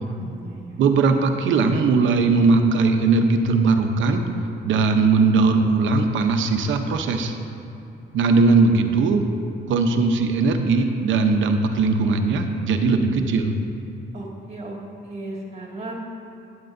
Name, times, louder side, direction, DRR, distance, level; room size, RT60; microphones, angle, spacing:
voice 1, 0.2-0.6 14.1-14.8 15.0-15.9, right 2 dB, 30° right, -2 dB, 2.1 m, -36 dB
voice 2, 0.8-4.2 4.6-7.3 8.1-9.2 9.7-13.6, right 4 dB, 75° right, 6 dB, 0.8 m, -19 dB
12.0 x 9.7 x 2.7 m, 2.9 s
cardioid pair, 90°, 20 cm